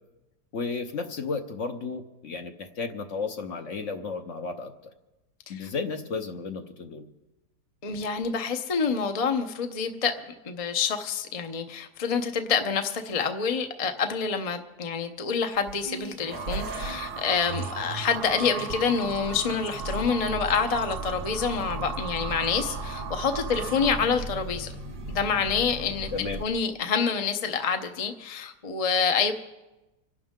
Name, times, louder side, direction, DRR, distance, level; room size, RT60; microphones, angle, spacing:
voice 1, 0.5-4.7 5.5-7.1 26.1-26.4, left 4 dB, 55° left, 6 dB, 1.2 m, -33 dB
voice 2, 7.8-10.1 10.4-24.7 25.1-26.1 26.4-29.3, left 6 dB, 30° left, 6 dB, 0.7 m, -27 dB
sound 1, 15.5-26.4, right 2 dB, 80° right, 2.1 m, -37 dB
sound 2, 16.2-24.3, right 6 dB, 55° right, 1.0 m, -38 dB
26.5 x 11.5 x 3.7 m, 1.0 s
omnidirectional pair, 1.7 m